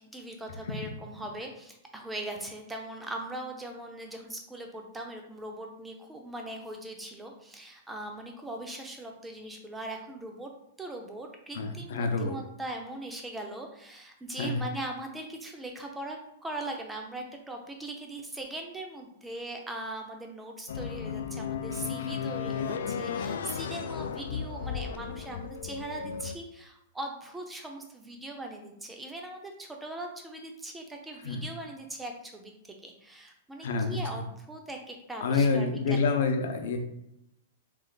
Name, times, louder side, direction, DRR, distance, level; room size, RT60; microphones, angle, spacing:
voice 1, 0.1-10.5 10.8-36.1, right 1 dB, 5° right, 2 dB, 0.5 m, -40 dB
voice 2, 11.5-12.4 14.4-14.6 31.2-31.4 33.6-34.0 35.2-36.8, left 4 dB, 60° left, 5 dB, 0.7 m, -27 dB
sound 1, 20.7-26.4, left 7 dB, 90° left, 0.3 m, -34 dB
3.5 x 3.2 x 3.9 m, 0.80 s
supercardioid pair, 175°, 0 cm